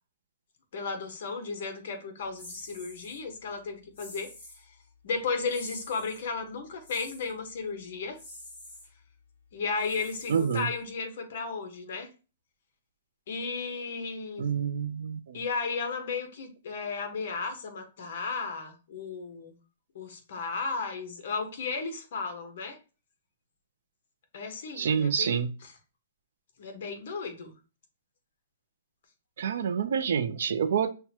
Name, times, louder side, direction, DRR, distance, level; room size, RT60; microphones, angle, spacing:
voice 1, 0.7-4.3 5.0-8.2 9.5-12.1 13.3-14.5 15.3-19.6 19.9-22.8 24.3-25.4 26.6-27.5, left 4 dB, 50° left, 0.9 m, -34 dB
sound 1, 2.4-3.2 3.9-4.6 5.5-6.2 6.8-7.3 8.1-8.9 9.8-10.9, left 1 dB, 20° left, 2.2 m, -47 dB
voice 2, 10.3-10.7 14.4-15.4 24.8-25.5 29.4-30.9, right 7 dB, 60° right, 0.4 m, -27 dB
5.8 x 2.2 x 2.8 m
hypercardioid pair, 175°, 0 cm